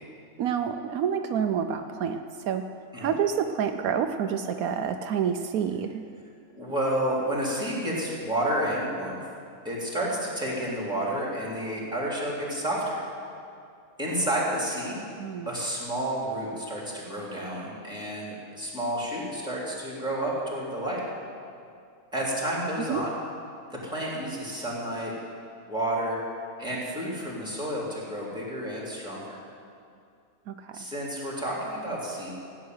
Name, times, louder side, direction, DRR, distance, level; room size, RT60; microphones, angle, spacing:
voice 1, 0.4-2.6 3.0-6.0 15.2-15.5 22.9-23.0 30.5-30.6, right 7 dB, 80° right, 7 dB, 1.1 m, -28 dB
voice 2, 6.6-9.2 9.6-13.0 14.0-15.0 15.5-21.0 22.1-23.2 23.7-25.1 25.7-26.2 26.6-29.4 30.7-32.3, right 1 dB, 5° right, -5 dB, 3.5 m, -30 dB
16.0 x 7.5 x 9.5 m, 2.4 s
omnidirectional pair, 1.5 m